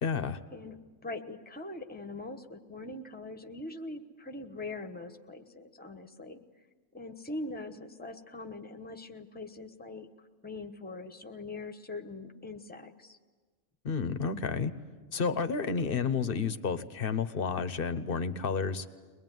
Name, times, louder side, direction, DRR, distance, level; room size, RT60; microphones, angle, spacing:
voice 1, 0.0-0.4 13.8-14.7 15.1-18.9, left 5 dB, 45° left, 11 dB, 1.1 m, -31 dB
voice 2, 0.5-6.4 6.9-10.1 10.4-13.2, left 2 dB, 10° left, 7 dB, 1.0 m, -42 dB
23.0 x 20.5 x 9.2 m, 1.4 s
omnidirectional pair, 1.4 m